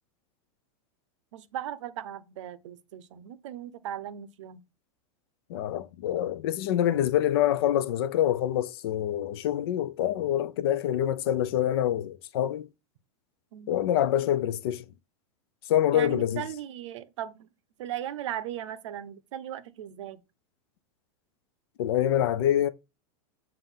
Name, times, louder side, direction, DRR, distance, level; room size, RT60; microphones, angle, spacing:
voice 1, 1.3-4.6 13.5-13.8 15.9-17.5 17.8-20.2, right 11 dB, 60° right, 0.7 m, -37 dB
voice 2, 5.5-12.7 13.7-14.8 15.7-16.4 21.8-22.7, left 11 dB, 45° left, 0.5 m, -26 dB
7.3 x 2.6 x 5.4 m
supercardioid pair, 175°, 17 cm